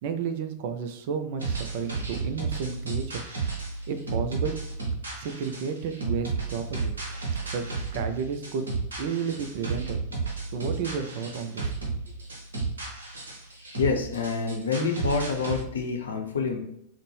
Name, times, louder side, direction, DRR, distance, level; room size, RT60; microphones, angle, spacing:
voice 1, 0.0-3.3 3.9-4.6 5.2-6.9 7.4-8.7 9.0-10.0 10.5-11.7, right 6 dB, 50° right, 7 dB, 0.4 m, -32 dB
sound 1, 1.4-15.6, right 4 dB, 70° right, 0.9 m, -33 dB
voice 2, 13.8-16.6, left 5 dB, 70° left, 2 dB, 0.6 m, -27 dB
4.1 x 2.1 x 3.1 m, 0.77 s
figure-of-eight pair, 90°, 0 cm